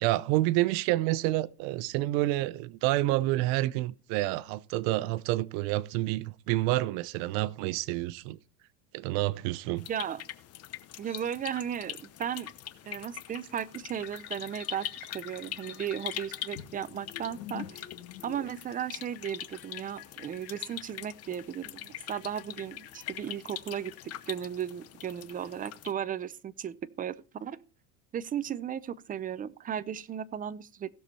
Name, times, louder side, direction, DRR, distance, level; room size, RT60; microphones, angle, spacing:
voice 1, 0.0-8.4 8.9-9.9, right 17 dB, 75° right, 0.8 m, -28 dB
sound 1, 9.8-25.9, left 12 dB, 40° left, 0.9 m, -43 dB
voice 2, 9.9-10.2 11.0-12.5 12.8-17.8 18.2-27.6 28.1-30.9, right 9 dB, 20° right, 0.5 m, -36 dB
sound 2, 14.0-24.2, left 12 dB, 70° left, 1.8 m, -47 dB
16.5 x 6.9 x 4.3 m
cardioid pair, 140°, 38 cm